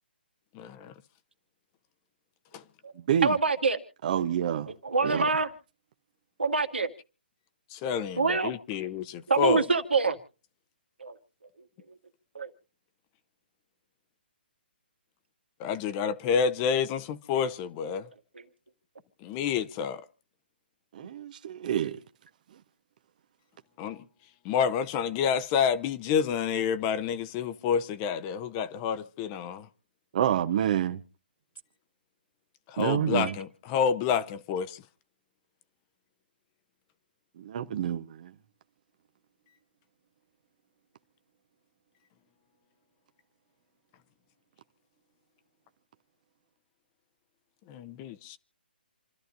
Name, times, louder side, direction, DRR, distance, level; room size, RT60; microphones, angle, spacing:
voice 1, 0.5-0.9 2.5-2.6 7.7-9.6 15.6-18.1 19.2-20.0 23.8-24.0 24.4-29.7 32.7-34.8 47.7-48.4, left 7 dB, 25° left, 0.9 m, -29 dB
voice 2, 3.2-3.8 4.7-5.5 6.4-6.9 8.2-8.5 9.3-10.2 11.0-11.2 11.9-12.0 12.3-12.5 18.3-18.4 21.0-21.1, right 4 dB, 85° right, 2.1 m, -26 dB
voice 3, 4.0-4.7 5.0-5.3 20.9-22.0 30.1-31.0 32.8-33.4 37.4-38.3, right 10 dB, 45° right, 0.9 m, -28 dB
28.0 x 12.5 x 2.6 m
hypercardioid pair, 140°, 6 cm